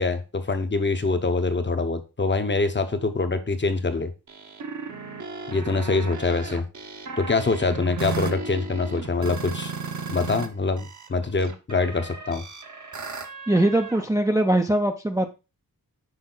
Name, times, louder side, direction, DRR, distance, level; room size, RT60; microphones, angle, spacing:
voice 1, 0.0-4.1 5.5-6.6 7.2-9.7 10.1-12.4, left 3 dB, 30° left, 8 dB, 0.7 m, -24 dB
sound 1, 4.3-10.5 10.8-14.1, right 4 dB, 55° right, 0.9 m, -35 dB
voice 2, 13.5-15.3, right 1 dB, 10° right, 4 dB, 0.4 m, -21 dB
6.3 x 4.8 x 3.8 m, 0.29 s
wide cardioid pair, 155°, 36 cm